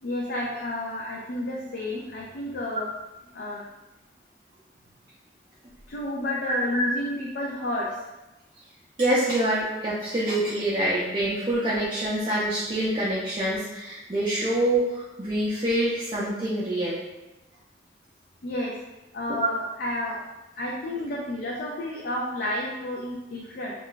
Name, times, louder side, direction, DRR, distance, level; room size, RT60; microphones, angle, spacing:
voice 1, 0.0-2.9 3.3-3.6 5.9-7.9 18.4-18.7 19.1-20.2 20.6-23.7, left 1 dB, 60° left, -3 dB, 0.4 m, -31 dB
voice 2, 6.4-6.9 9.0-17.0 19.3-19.5, right 1 dB, 30° right, -7 dB, 0.4 m, -26 dB
2.3 x 2.1 x 3.8 m, 1.0 s
head